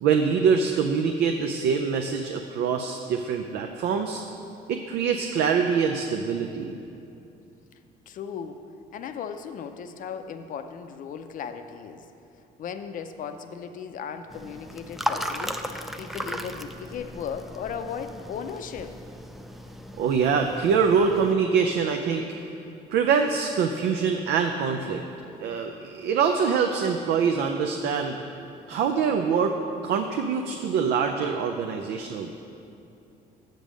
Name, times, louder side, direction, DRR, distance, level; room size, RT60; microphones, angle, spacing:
voice 1, 0.0-4.2 4.7-6.7 20.0-22.2 22.9-25.0 25.4-28.2 28.7-29.6 29.8-32.3, right 6 dB, 75° right, 4 dB, 0.5 m, -24 dB
voice 2, 8.1-8.6 8.9-12.1 12.6-15.6 16.0-19.0, left 7 dB, 55° left, 8 dB, 0.5 m, -36 dB
sound 1, 14.3-21.3, equal, ahead, 0.3 m, -36 dB
7.6 x 5.2 x 6.3 m, 2.7 s
cardioid pair, 110°, 17 cm